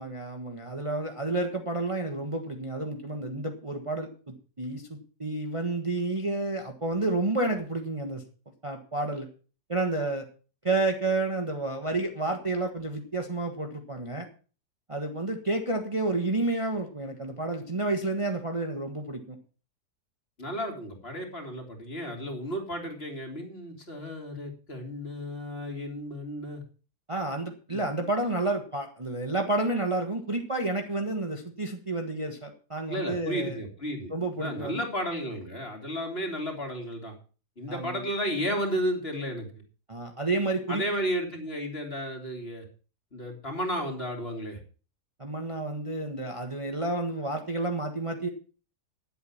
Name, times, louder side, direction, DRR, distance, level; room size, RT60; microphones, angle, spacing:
voice 1, 0.0-4.1 4.6-8.2 8.6-9.3 9.7-10.2 10.6-14.3 14.9-19.4 27.1-33.6 34.1-34.8 37.7-38.0 39.9-40.8 45.2-48.3, right 2 dB, 20° right, 3 dB, 1.3 m, -30 dB
voice 2, 20.4-26.6 27.7-27.9 32.9-37.1 37.6-39.5 40.7-42.6 43.1-44.6, equal, 35° left, 2 dB, 3.1 m, -33 dB
10.5 x 8.0 x 7.2 m, 0.38 s
omnidirectional pair, 1.7 m